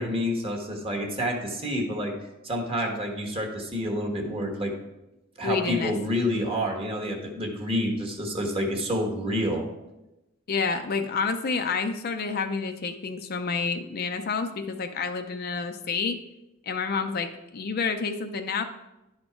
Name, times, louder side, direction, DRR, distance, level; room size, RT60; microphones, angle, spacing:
voice 1, 0.0-2.1 2.4-4.7 5.4-9.7, equal, 30° right, 2 dB, 1.3 m, -28 dB
voice 2, 5.4-5.9 10.5-16.2 16.7-18.6, left 5 dB, 50° left, 7 dB, 0.5 m, -29 dB
10.5 x 4.4 x 4.5 m, 0.95 s
head